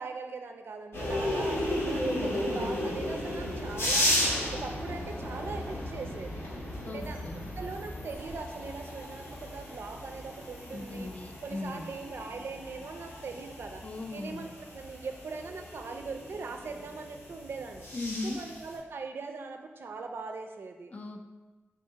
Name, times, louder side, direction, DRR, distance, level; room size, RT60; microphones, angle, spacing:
voice 1, 0.0-4.2 4.5-6.4 6.8-11.1 11.4-13.8 14.1-17.9 18.2-20.9, right 4 dB, 60° right, 5 dB, 0.4 m, -41 dB
sound 1, 0.9-18.8, left 1 dB, 75° left, 1.1 m, -34 dB
voice 2, 6.8-7.4 10.7-11.8 13.8-14.5 17.9-18.5 20.9-21.3, left 2 dB, 35° left, 5 dB, 0.3 m, -38 dB
3.6 x 2.8 x 4.4 m, 1.2 s
wide cardioid pair, 140°, 4 cm